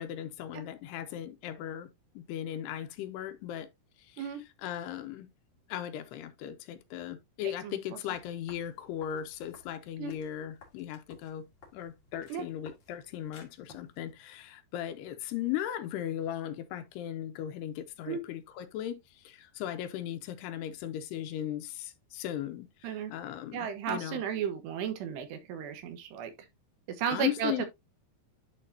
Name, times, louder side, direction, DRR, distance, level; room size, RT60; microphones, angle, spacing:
voice 1, 0.0-1.9 2.2-3.7 4.1-4.3 4.6-5.3 5.7-11.4 11.7-24.2 27.1-27.7, left 11 dB, 80° left, 2.8 m, -37 dB
voice 2, 7.6-8.0 10.0-10.2 12.3-12.5 18.1-18.2 22.8-23.1 23.5-26.3 26.9-27.7, right 8 dB, 85° right, 3.4 m, -34 dB
sound 1, 8.1-14.1, left 4 dB, 35° left, 2.1 m, -56 dB
10.5 x 4.8 x 2.7 m
omnidirectional pair, 4.8 m